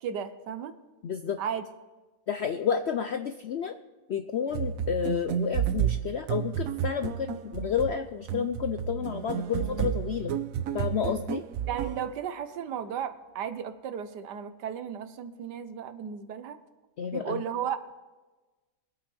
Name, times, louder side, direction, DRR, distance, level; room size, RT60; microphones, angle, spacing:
voice 1, 0.0-0.8 1.4-1.6 11.7-16.6 17.1-17.8, right 8 dB, 90° right, 11 dB, 1.5 m, -34 dB
voice 2, 1.0-1.4 2.3-3.8 4.1-10.3 10.7-11.4 17.0-17.4, left 7 dB, 75° left, 8 dB, 0.6 m, -30 dB
sound 1, 4.5-12.1, right 9 dB, 65° right, 0.9 m, -31 dB
23.0 x 8.5 x 3.4 m, 1.2 s
omnidirectional pair, 1.8 m